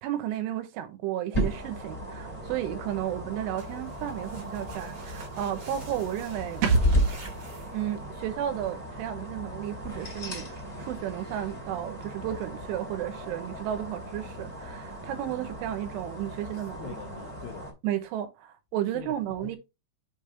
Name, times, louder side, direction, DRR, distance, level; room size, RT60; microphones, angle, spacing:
voice 1, 0.0-6.7 7.7-17.0 17.8-19.6, right 11 dB, 80° right, 3.4 m, -33 dB
sound 1, 1.3-17.7, equal, 20° left, 2.1 m, -35 dB
sound 2, 3.6-8.1, right 3 dB, 45° right, 2.3 m, -48 dB
sound 3, 6.6-10.1 10.4-10.5, right 4 dB, 60° right, 2.5 m, -32 dB
voice 2, 16.5-17.7 18.9-19.6, left 10 dB, 80° left, 2.5 m, -44 dB
7.3 x 5.3 x 3.2 m
omnidirectional pair, 5.6 m